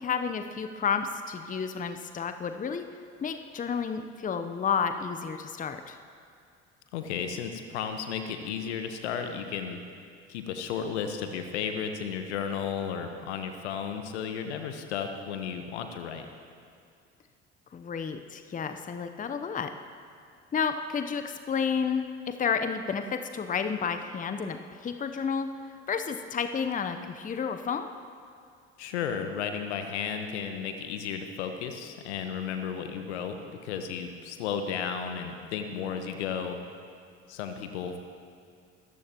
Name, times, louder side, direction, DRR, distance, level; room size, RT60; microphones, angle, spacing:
voice 1, 0.0-2.8 3.2-6.0 17.7-19.7 20.5-25.5 25.9-27.9, left 6 dB, 25° left, 8 dB, 0.8 m, -31 dB
voice 2, 6.9-9.8 10.3-16.3 28.8-36.6 37.3-38.0, left 7 dB, 70° left, 7 dB, 1.2 m, -34 dB
23.0 x 14.0 x 3.0 m, 2.3 s
figure-of-eight pair, 60°, 35 cm